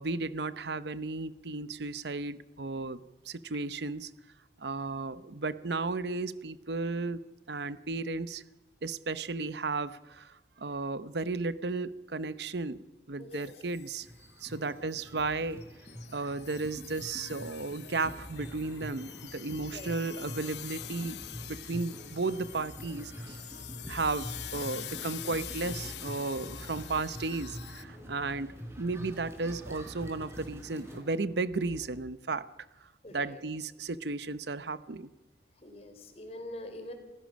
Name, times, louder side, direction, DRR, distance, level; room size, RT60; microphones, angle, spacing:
voice 1, 0.0-3.0 3.3-4.1 4.6-7.2 7.5-8.4 8.8-14.1 14.4-15.6 16.1-23.4 23.9-32.5 33.1-35.1, right 3 dB, 75° right, 15 dB, 0.8 m, -34 dB
voice 2, 13.2-13.5 14.5-14.8 19.6-19.9 26.5-26.7 33.0-33.4 35.6-36.9, left 1 dB, 35° left, 6 dB, 3.6 m, -45 dB
sound 1, 13.3-14.2 14.4-14.6 14.9-15.3 15.6-27.8, left 13 dB, 80° left, 0.8 m, -45 dB
sound 2, 14.0-31.0, equal, 15° right, 4.2 m, -46 dB
sound 3, 17.9-32.0, equal, 5° left, 5.7 m, -53 dB
28.0 x 16.0 x 6.3 m, 1.1 s
head